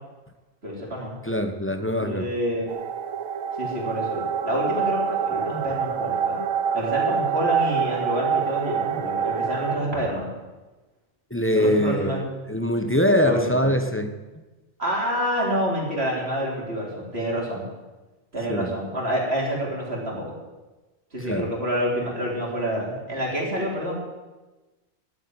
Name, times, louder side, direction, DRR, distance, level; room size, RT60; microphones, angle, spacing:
voice 1, 0.6-1.2 2.0-2.7 3.6-6.4 6.7-10.3 11.5-12.2 13.2-13.7 14.8-17.7 18.3-20.3 21.1-24.0, equal, 45° right, -3 dB, 4.2 m, -28 dB
voice 2, 1.2-2.3 11.3-14.1 18.5-18.7 21.2-21.5, equal, 10° left, 7 dB, 0.9 m, -23 dB
sound 1, 2.7-9.8, right 7 dB, 80° right, 1.3 m, -26 dB
12.5 x 8.4 x 9.7 m, 1.2 s
omnidirectional pair, 1.4 m